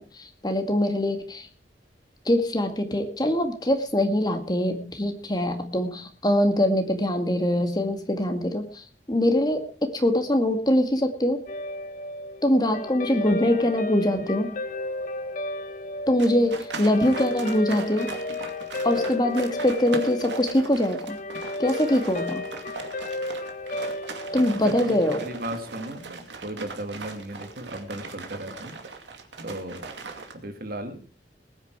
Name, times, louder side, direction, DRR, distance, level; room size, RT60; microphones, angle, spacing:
voice 1, 0.0-1.5 2.3-11.4 12.4-14.6 16.1-18.1 18.8-21.2 21.6-22.4 24.3-25.2, left 1 dB, 25° left, 6 dB, 2.1 m, -23 dB
Guitar, 11.5-26.0, left 1 dB, 45° left, 1.5 m, -34 dB
sound 1, 16.2-30.3, right 4 dB, 90° right, 2.4 m, -39 dB
voice 2, 24.9-28.7 29.4-29.8 30.3-31.0, right 1 dB, 55° right, 7 dB, 2.4 m, -36 dB
19.5 x 9.4 x 4.8 m, 0.37 s
head